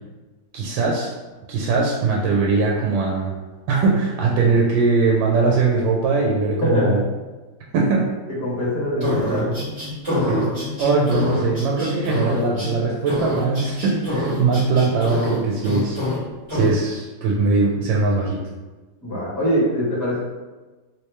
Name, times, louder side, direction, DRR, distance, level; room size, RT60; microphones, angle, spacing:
voice 1, 0.5-1.1 1.5-3.3 3.7-7.0 7.7-8.1 10.3-16.0 16.5-18.4, right 4 dB, 90° right, -2 dB, 1.3 m, -20 dB
voice 2, 6.6-7.0 8.4-9.6 19.0-20.2, equal, 10° left, -8 dB, 0.9 m, -22 dB
sound 1, 9.0-12.7 13.1-15.4 15.6-16.2 16.5-16.7, left 1 dB, 20° right, 1.4 m, -25 dB
3.0 x 2.9 x 3.2 m, 1.2 s
omnidirectional pair, 2.0 m